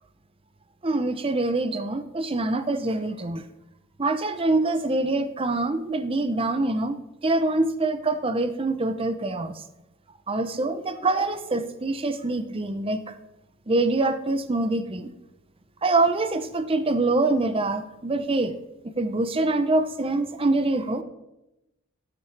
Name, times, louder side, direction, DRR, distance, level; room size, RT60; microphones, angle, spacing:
voice 1, 0.8-3.4 4.0-7.0 7.2-9.6 10.3-13.0 13.7-15.1 15.8-18.5 19.0-21.0, right 2 dB, 25° right, 11 dB, 0.6 m, -25 dB
13.5 x 8.6 x 3.3 m, 0.92 s
head